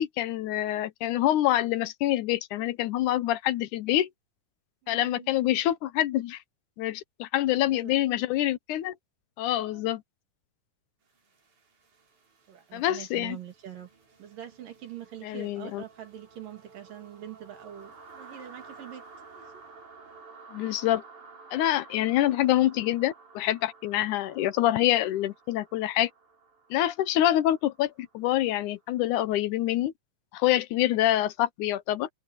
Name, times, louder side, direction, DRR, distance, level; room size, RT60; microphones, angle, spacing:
voice 1, 0.0-4.1 4.9-6.4 6.8-8.9 9.4-10.0 12.7-13.4 15.2-15.8 20.5-21.0 21.5-26.1 26.7-29.9 30.3-32.1, left 13 dB, 75° left, 2.2 m, -26 dB
voice 2, 4.8-5.3 7.6-8.0 9.6-9.8 12.5-13.9 14.2-19.0 19.3-19.6, right 10 dB, 90° right, 4.4 m, -44 dB
sound 1, 11.1-28.9, right 4 dB, 65° right, 6.6 m, -53 dB
omnidirectional pair, 3.7 m